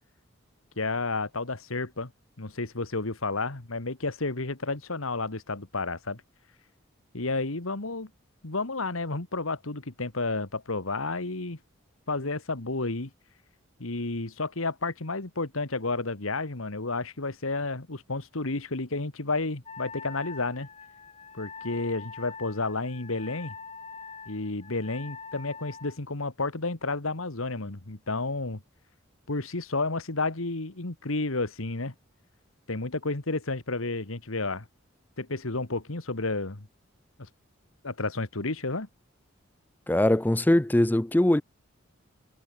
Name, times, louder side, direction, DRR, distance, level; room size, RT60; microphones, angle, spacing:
voice 1, 0.8-2.1 2.4-6.2 7.1-8.1 8.4-11.6 12.1-13.1 13.8-20.7 21.3-23.5 24.3-28.6 29.3-31.9 32.7-34.7 35.2-36.7 37.8-38.9, left 3 dB, 85° left, 2.0 m, -31 dB
Wind instrument woodwind instrument, 19.6-26.0, left 5 dB, 30° left, 2.7 m, -44 dB
voice 2, 39.9-41.4, left 1 dB, 10° left, 0.4 m, -21 dB
head